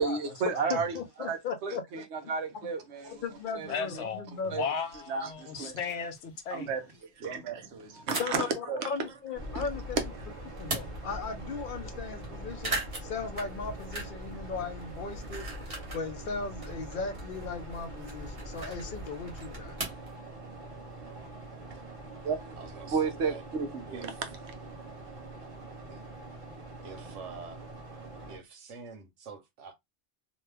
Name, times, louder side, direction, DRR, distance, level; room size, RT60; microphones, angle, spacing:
voice 1, 0.0-0.9 1.2-3.2 3.5-3.7 4.5-4.6 5.1-5.7 6.5-6.8 7.2-8.9 9.5-9.6 22.2-22.5 22.9-24.1, right 5 dB, 70° right, 1.0 m, -32 dB
voice 2, 0.7-2.3 3.0-4.7 8.2-10.0 10.6-15.5 15.9-19.8, left 5 dB, 55° left, 0.6 m, -37 dB
sound 1, 3.2-3.3 4.4-4.5 4.9-5.0 5.3-5.4 5.7-6.2 8.1-8.6 9.1-10.1 10.4-11.2 11.6-11.7 11.9-12.3 12.5-14.3 14.6-16.1 16.4-20.1, right 2 dB, 50° right, 1.5 m, -39 dB
voice 3, 3.7-6.7, left 6 dB, 75° left, 1.0 m, -36 dB
sound 2, 9.3-28.4, right 1 dB, 30° right, 1.0 m, -43 dB
voice 4, 22.6-23.4 23.9-24.2 25.9-26.1 26.8-27.6 28.3-29.7, right 4 dB, 90° right, 1.2 m, -46 dB
3.0 x 2.2 x 3.3 m
omnidirectional pair, 1.2 m